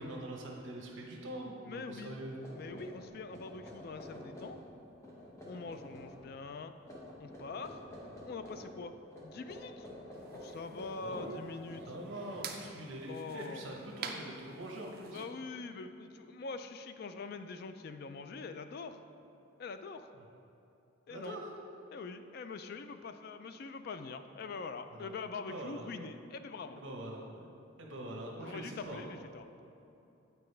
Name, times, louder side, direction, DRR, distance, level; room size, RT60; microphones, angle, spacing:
voice 1, 0.0-2.4 5.5-5.6 11.0-11.5 11.9-15.2 21.1-21.5 24.9-25.1 25.5-25.9 26.7-27.5 27.8-29.0, right 1 dB, 70° right, -1 dB, 0.8 m, -43 dB
voice 2, 1.6-2.2 2.5-4.6 5.5-6.7 7.2-7.8 8.3-8.9 9.2-9.9 10.3-11.8 13.1-13.7 15.1-19.0 19.6-20.1 21.1-21.4 21.9-26.8 28.4-29.4, left 4 dB, 50° left, 9 dB, 0.3 m, -44 dB
sound 1, 2.4-4.7 5.0-6.2 6.8-8.7 9.1-12.4, left 1 dB, 15° left, 1.1 m, -49 dB
sound 2, 10.1-15.3, right 5 dB, 50° right, 0.5 m, -48 dB
8.4 x 4.6 x 3.3 m, 2.9 s
head